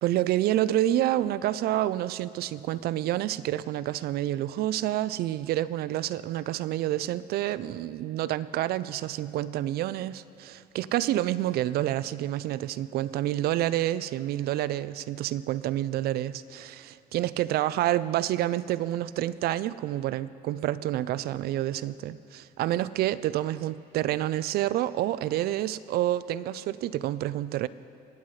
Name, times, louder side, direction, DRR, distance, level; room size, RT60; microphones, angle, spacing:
voice 1, 0.0-27.7, right 13 dB, 65° right, 17 dB, 0.4 m, -28 dB
26.0 x 9.3 x 3.2 m, 2.7 s
cardioid pair, 110°, 17 cm